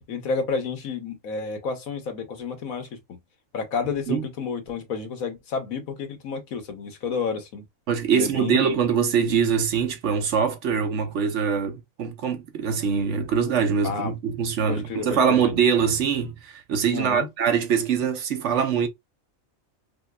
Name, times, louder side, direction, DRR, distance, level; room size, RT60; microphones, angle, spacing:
voice 1, 0.1-3.2 3.5-7.6 8.1-8.8 13.8-14.1 14.7-15.4 16.9-17.3, left 5 dB, 90° left, 1.4 m, -30 dB
voice 2, 7.9-18.9, right 7 dB, 65° right, 1.0 m, -23 dB
4.9 x 2.3 x 2.2 m
omnidirectional pair, 1.4 m